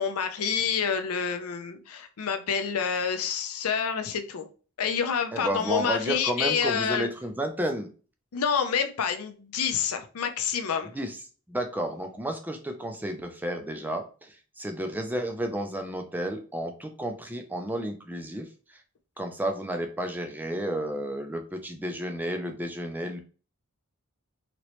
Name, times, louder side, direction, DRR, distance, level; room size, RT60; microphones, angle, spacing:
voice 1, 0.0-4.5 4.8-7.1 8.3-10.9, left 6 dB, 85° left, 8 dB, 0.5 m, -28 dB
voice 2, 5.3-7.9 11.0-11.2 11.5-18.5 19.2-23.2, right 1 dB, 10° right, 5 dB, 0.4 m, -32 dB
3.0 x 2.9 x 3.0 m, 0.37 s
head